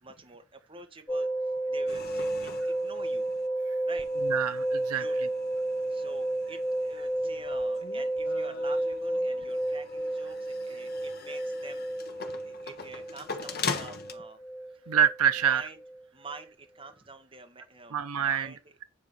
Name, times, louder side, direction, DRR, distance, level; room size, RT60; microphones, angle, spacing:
voice 1, 0.0-3.3 3.8-4.1 4.9-5.2 5.8-11.9 12.4-14.4 14.9-15.0 15.4-15.8 16.1-18.8, right 3 dB, 25° right, 1.4 m, -47 dB
sound 1, 1.1-16.0 16.3-16.4, right 1 dB, 10° left, 0.8 m, -32 dB
sound 2, 1.9-3.5 4.0-14.1, left 5 dB, 45° left, 1.2 m, -42 dB
voice 2, 4.2-5.1 14.9-15.6 17.9-18.5, right 8 dB, 80° right, 0.7 m, -26 dB
9.8 x 3.8 x 6.7 m
head